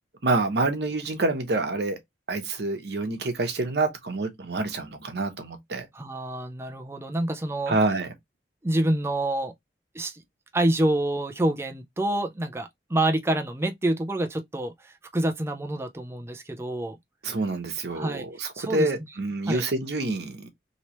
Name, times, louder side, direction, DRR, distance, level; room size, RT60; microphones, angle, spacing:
voice 1, 0.2-2.0 2.3-5.9 7.7-8.1 17.2-20.5, right 2 dB, 70° right, 0.9 m, -27 dB
voice 2, 5.9-7.8 8.6-9.5 9.9-10.2 10.5-17.0 17.9-18.3 18.5-18.9 19.5-19.6, right 1 dB, 15° right, 0.4 m, -27 dB
3.0 x 2.9 x 3.0 m
head